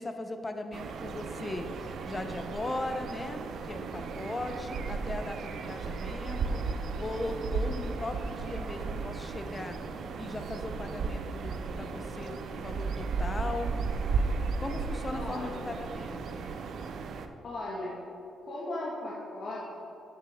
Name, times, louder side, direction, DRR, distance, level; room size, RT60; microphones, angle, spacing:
voice 1, 0.0-6.6 7.0-9.8 10.2-13.7 14.6-16.5, left 2 dB, 30° left, 7 dB, 0.8 m, -38 dB
sound 1, 0.7-17.3, right 4 dB, 70° right, 0.6 m, -35 dB
voice 2, 15.1-15.7 17.4-18.0 18.4-19.8, left 1 dB, 55° left, -6 dB, 1.7 m, -37 dB
10.0 x 6.7 x 3.6 m, 2.8 s
cardioid pair, 75°, 0 cm